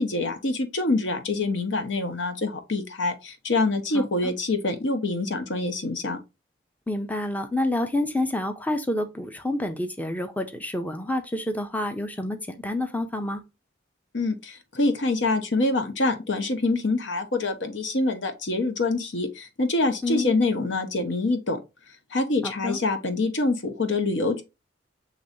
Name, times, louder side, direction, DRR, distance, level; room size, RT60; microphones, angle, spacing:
voice 1, 0.0-6.2 14.1-21.6 22.1-24.4, left 2 dB, 80° left, 0.9 m, -25 dB
voice 2, 3.9-4.3 6.9-13.4 20.0-20.3 22.4-22.8, left 1 dB, 10° left, 0.4 m, -28 dB
6.5 x 3.1 x 2.6 m
head